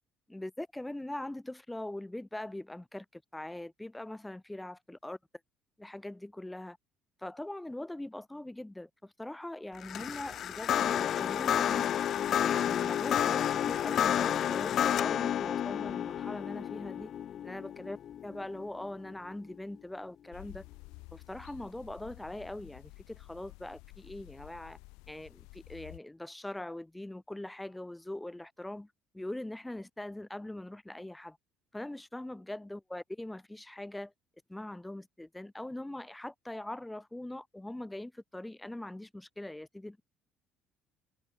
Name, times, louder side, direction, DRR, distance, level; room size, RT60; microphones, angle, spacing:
voice 1, 0.3-5.2 5.8-6.8 7.2-11.9 12.4-17.1 17.4-20.7 21.1-24.8 25.1-28.9 29.1-31.4 31.7-34.1 34.5-40.0, left 1 dB, 10° left, 0.7 m, -42 dB
sound 1, 9.8-19.1, left 10 dB, 55° left, 0.6 m, -30 dB
sound 2, 20.3-26.0, left 27 dB, 85° left, 2.1 m, -52 dB
supercardioid pair, 85°, 0 cm